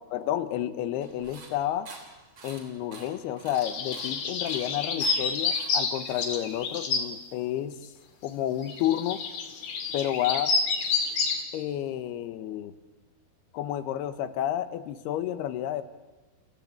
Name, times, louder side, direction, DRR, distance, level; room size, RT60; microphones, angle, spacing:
voice 1, 0.1-1.9 2.4-7.8 8.2-9.2 9.9-10.5 11.5-12.7 13.5-15.8, left 11 dB, 90° left, 12 dB, 3.1 m, -30 dB
sound 1, 1.0-6.8, right 3 dB, 35° right, 3.9 m, -49 dB
sound 2, 3.6-7.0 8.6-11.4, left 4 dB, 70° left, 4.2 m, -29 dB
30.0 x 15.0 x 8.6 m, 1.2 s
omnidirectional pair, 4.5 m